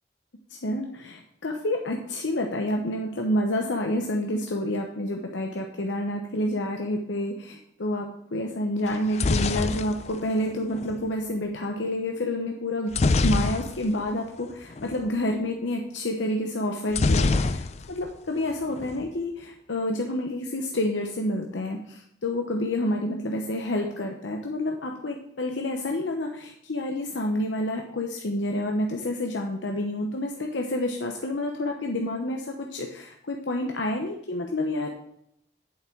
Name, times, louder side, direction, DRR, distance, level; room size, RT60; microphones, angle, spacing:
voice 1, 0.5-12.9 13.2-34.9, left 1 dB, 85° left, 2 dB, 0.9 m, -29 dB
sound 1, 8.9-11.0 12.9-14.1 14.4-14.5 14.8-15.0 16.9-18.1 18.4-19.0, left 3 dB, 35° left, 0.4 m, -25 dB
8.6 x 7.3 x 4.6 m, 0.73 s
head